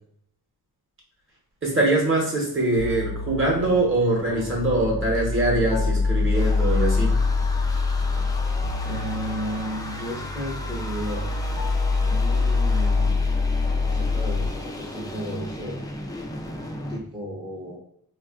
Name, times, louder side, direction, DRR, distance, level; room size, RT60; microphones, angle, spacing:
voice 1, 1.6-7.2, right 2 dB, 30° right, -2 dB, 0.9 m, -23 dB
sound 1, 2.8-14.5, left 3 dB, 70° left, 0.7 m, -25 dB
sound 2, 5.8-17.0, left 1 dB, 10° left, 0.3 m, -36 dB
voice 2, 8.8-11.3 12.0-13.2 13.9-15.8 16.9-17.8, right 1 dB, 10° right, -6 dB, 0.7 m, -34 dB
3.3 x 2.4 x 2.3 m, 0.68 s
wide cardioid pair, 110°, 38 cm